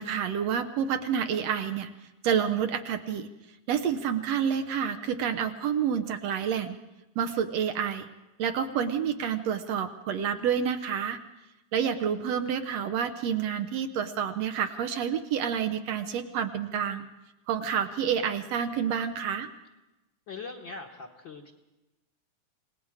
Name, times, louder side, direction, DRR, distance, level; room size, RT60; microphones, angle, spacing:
voice 1, 0.0-1.9 2.2-3.3 3.7-6.8 7.2-8.1 8.4-11.2 11.7-17.1 17.5-19.5, right 8 dB, 70° right, 7 dB, 1.8 m, -29 dB
voice 2, 20.3-21.5, left 4 dB, 50° left, -1 dB, 1.5 m, -41 dB
28.0 x 19.0 x 4.9 m, 1.0 s
omnidirectional pair, 3.5 m